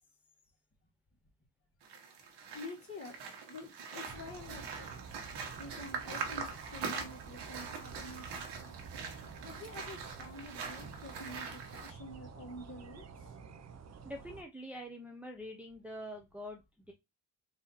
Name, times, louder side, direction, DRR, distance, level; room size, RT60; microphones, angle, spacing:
sound 1, 1.8-11.9, right 5 dB, 90° right, 1.3 m, -43 dB
voice 1, 2.5-3.2 3.5-5.2 5.5-8.8 9.4-13.3, left 2 dB, 35° left, -1 dB, 2.0 m, -48 dB
sound 2, 4.1-14.4, right 5 dB, 40° right, 0.6 m, -50 dB
voice 2, 14.0-16.9, equal, 5° right, 1 dB, 0.7 m, -45 dB
4.1 x 2.8 x 4.0 m, 0.22 s
cardioid pair, 100°, 41 cm